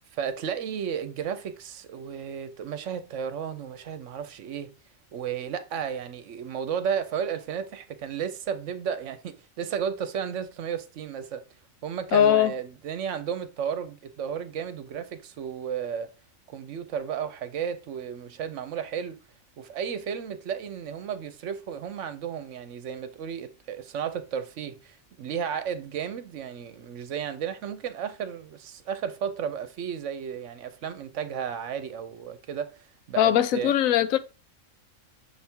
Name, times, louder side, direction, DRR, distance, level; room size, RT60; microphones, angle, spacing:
voice 1, 0.1-4.7 5.1-11.4 11.8-16.1 16.5-19.2 19.6-33.7, right 8 dB, 65° right, 1.0 m, -33 dB
voice 2, 12.1-12.5 33.2-34.2, left 10 dB, 80° left, 1.0 m, -20 dB
6.3 x 3.5 x 4.4 m
omnidirectional pair, 1.4 m